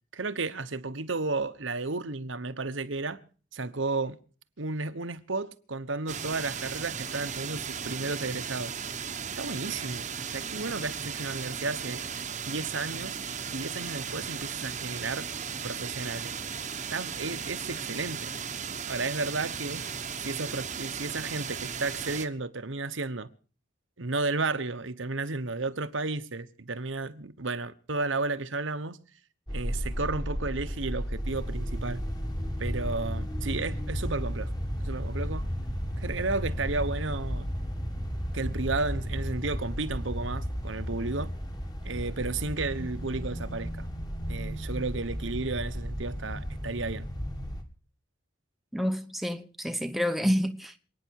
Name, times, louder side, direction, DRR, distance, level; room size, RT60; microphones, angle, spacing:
voice 1, 0.1-3.2 3.5-4.2 4.6-8.7 9.3-12.0 12.5-13.2 13.5-15.3 15.6-16.4 16.9-18.3 18.9-19.8 20.2-23.3 24.0-29.0 29.5-32.0 32.6-34.5 34.8-35.5 36.0-37.5 38.3-41.3 41.8-43.9 44.3-47.1, right 3 dB, 75° right, 1.2 m, -33 dB
sound 1, 6.1-22.3, right 7 dB, 35° right, 1.1 m, -36 dB
sound 2, 29.5-47.6, equal, 20° left, 2.0 m, -33 dB
voice 2, 48.7-50.8, equal, ahead, 0.9 m, -28 dB
27.5 x 9.8 x 4.7 m
head